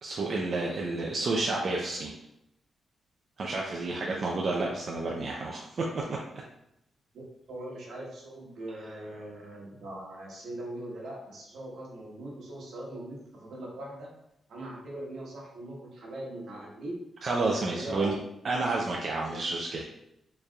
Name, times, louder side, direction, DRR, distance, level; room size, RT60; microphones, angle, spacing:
voice 1, 0.0-2.1 3.4-6.0 17.2-18.2 18.4-19.8, right 3 dB, 55° right, -2 dB, 0.5 m, -30 dB
voice 2, 4.0-4.3 7.5-14.1 14.5-16.9 17.5-18.1, right 1 dB, 80° right, -3 dB, 1.1 m, -41 dB
4.5 x 3.3 x 2.3 m, 0.83 s
cardioid pair, 90°, 0 cm